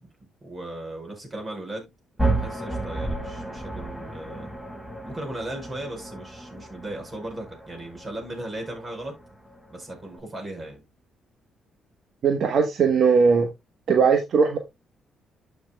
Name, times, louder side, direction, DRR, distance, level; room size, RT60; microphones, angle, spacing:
voice 1, 0.4-1.9 2.2-4.5 5.0-9.1 9.7-10.8, right 1 dB, 30° right, 5.6 m, -37 dB
sound 1, 2.2-10.2, right 2 dB, 5° right, 4.8 m, -33 dB
voice 2, 12.2-13.5 13.9-14.6, right 5 dB, 60° right, 1.1 m, -19 dB
12.0 x 5.9 x 2.2 m
cardioid pair, 90°, 0 cm